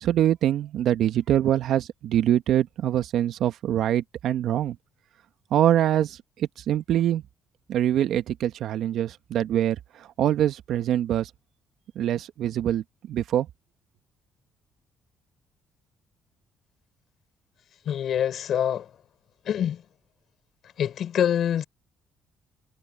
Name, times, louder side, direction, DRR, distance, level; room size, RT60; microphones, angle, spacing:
voice 1, 0.0-4.8 5.5-7.2 7.7-11.3 12.0-13.5, right 11 dB, 70° right, 1.8 m, -24 dB
voice 2, 17.9-18.9 19.4-19.8 20.8-21.6, left 9 dB, 65° left, 6.0 m, -25 dB
supercardioid pair, 60°, 0 cm